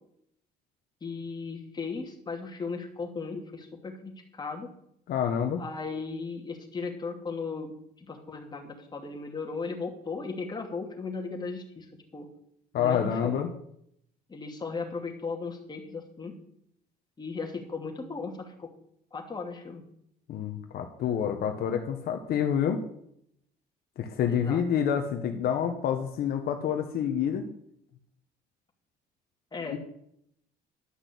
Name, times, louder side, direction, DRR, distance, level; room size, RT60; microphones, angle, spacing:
voice 1, 1.0-4.7 5.6-7.7 8.0-12.3 12.8-13.4 14.3-16.4 17.2-18.7 19.1-19.8 24.3-24.6 29.5-29.8, left 4 dB, 25° left, 2 dB, 2.5 m, -36 dB
voice 2, 5.1-5.6 12.7-13.5 20.3-22.8 24.0-27.4 29.7-29.8, left 8 dB, 65° left, 5 dB, 1.2 m, -28 dB
11.5 x 6.1 x 8.4 m, 0.72 s
cardioid pair, 110°, 17 cm